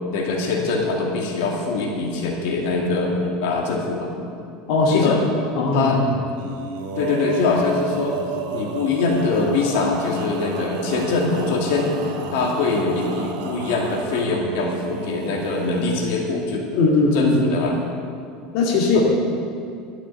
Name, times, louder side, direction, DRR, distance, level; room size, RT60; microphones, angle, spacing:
voice 1, 0.1-4.1 4.9-5.2 5.7-6.0 7.0-8.2 8.5-11.9 12.3-16.8 17.1-17.7 18.9-19.0, left 3 dB, 70° left, 0 dB, 2.4 m, -23 dB
voice 2, 4.7-5.2 5.5-5.9 16.8-17.3 18.5-19.0, left 3 dB, 55° left, -2 dB, 2.2 m, -18 dB
Male singing, 6.3-16.1, right 5 dB, 85° right, 2.2 m, -32 dB
12.5 x 9.0 x 8.8 m, 2.4 s
supercardioid pair, 165°, 0 cm